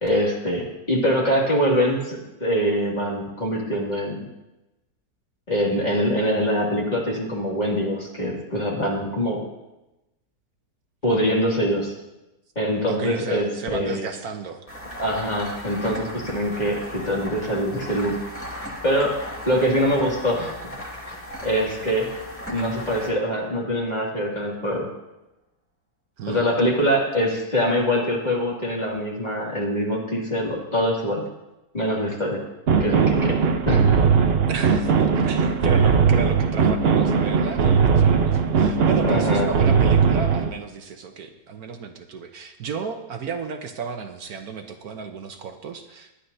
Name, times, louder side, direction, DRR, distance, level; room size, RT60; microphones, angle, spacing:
voice 1, 0.0-4.3 5.5-9.4 11.0-11.9 12.6-14.1 15.0-18.2 18.8-20.5 21.4-22.1 22.5-24.9 26.3-31.2 31.7-32.4 32.8-33.4 33.7-34.0 38.8-39.5, equal, 25° left, -3 dB, 2.4 m, -24 dB
voice 2, 12.9-14.6 26.2-26.5 34.5-46.1, right 5 dB, 70° right, 6 dB, 1.3 m, -33 dB
sound 1, 14.7-24.0, equal, 10° left, 1.8 m, -37 dB
sound 2, 32.7-40.5, right 6 dB, 50° right, 0.8 m, -19 dB
21.0 x 10.0 x 2.7 m, 0.96 s
omnidirectional pair, 1.7 m